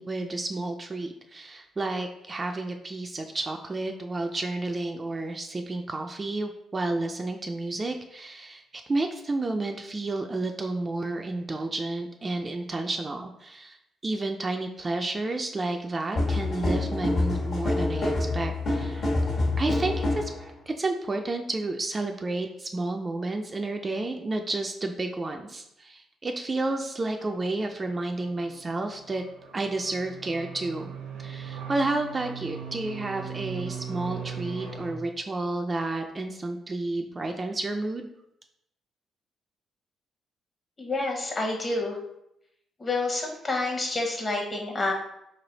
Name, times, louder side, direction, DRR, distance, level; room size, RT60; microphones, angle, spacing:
voice 1, 0.0-19.1 19.6-29.2 29.5-30.9 31.2-38.1, right 2 dB, 30° right, 4 dB, 0.3 m, -31 dB
sound 1, 16.1-20.4, left 2 dB, 55° left, 1.1 m, -26 dB
sound 2, 27.9-34.9, right 7 dB, 85° right, 0.7 m, -39 dB
voice 2, 40.8-42.0 42.8-44.9, left 2 dB, 30° left, 1 dB, 0.9 m, -28 dB
3.2 x 2.6 x 3.8 m, 0.81 s
cardioid pair, 90°, 0 cm